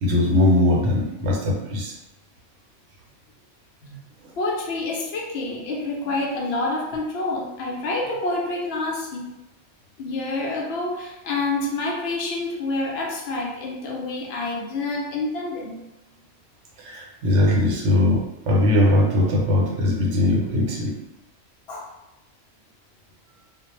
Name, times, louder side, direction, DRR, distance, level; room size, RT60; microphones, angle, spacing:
voice 1, 0.0-1.9 4.2-4.3 16.8-20.9, left 1 dB, 80° right, -2 dB, 1.0 m, -20 dB
voice 2, 4.4-9.4 10.0-15.8 21.7-21.9, left 2 dB, 65° left, -1 dB, 0.7 m, -28 dB
2.3 x 2.1 x 3.0 m, 0.91 s
omnidirectional pair, 1.3 m